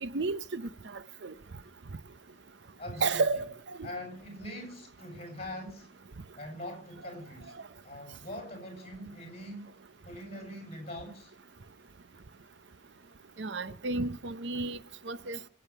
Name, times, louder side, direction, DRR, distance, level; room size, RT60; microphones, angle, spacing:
voice 1, 0.0-1.3 3.0-3.5 3.8-3.9 13.4-14.8 15.1-15.4, right 3 dB, 65° right, 0.7 m, -32 dB
voice 2, 2.8-3.2 3.8-5.9 6.4-7.6 7.8-9.7 10.0-11.3, left 1 dB, 35° left, 6.8 m, -42 dB
22.5 x 8.7 x 5.9 m
head